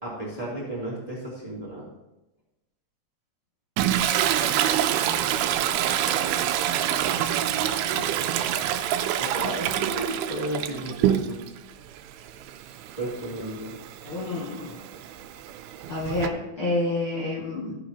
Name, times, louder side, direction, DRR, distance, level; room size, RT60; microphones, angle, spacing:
voice 1, 0.0-1.8 7.6-8.2 9.2-11.4 13.0-13.7, right 1 dB, 10° right, -6 dB, 2.5 m, -33 dB
Toilet flush, 3.8-11.6 12.0-16.3, right 11 dB, 80° right, 2.5 m, -26 dB
voice 2, 7.7-8.0 14.0-14.8 15.9-17.8, left 2 dB, 40° left, -8 dB, 2.2 m, -29 dB
14.5 x 8.6 x 2.9 m, 0.97 s
omnidirectional pair, 4.5 m